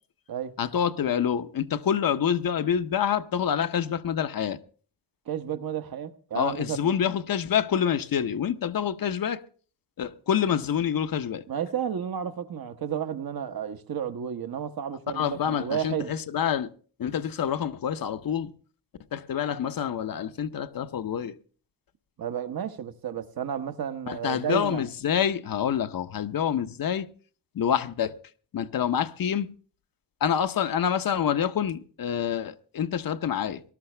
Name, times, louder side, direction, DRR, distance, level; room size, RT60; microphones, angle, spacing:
voice 1, 0.6-4.6 6.3-9.4 10.0-11.4 15.1-16.7 17.0-18.5 19.1-21.4 24.1-27.1 27.5-28.1 28.5-29.5 30.2-33.6, left 8 dB, 55° left, 0.8 m, -27 dB
voice 2, 5.3-6.9 11.5-16.1 22.2-24.8, right 8 dB, 55° right, 1.1 m, -32 dB
19.0 x 12.5 x 3.3 m
wide cardioid pair, 155°, 41 cm